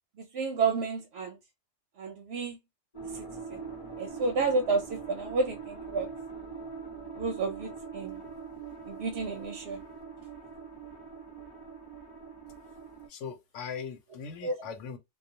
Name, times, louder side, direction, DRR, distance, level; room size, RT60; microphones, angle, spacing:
voice 1, 0.3-1.4 2.0-2.6 3.1-3.2 3.5-3.6 4.0-6.1 7.2-8.2 8.8-9.8 14.4-14.7, right 4 dB, 65° right, 0.7 m, -31 dB
sound 1, 2.9-13.1, right 5 dB, 25° left, 0.7 m, -43 dB
voice 2, 13.1-15.0, left 6 dB, 75° left, 1.0 m, -40 dB
2.3 x 2.3 x 2.7 m
omnidirectional pair, 1.3 m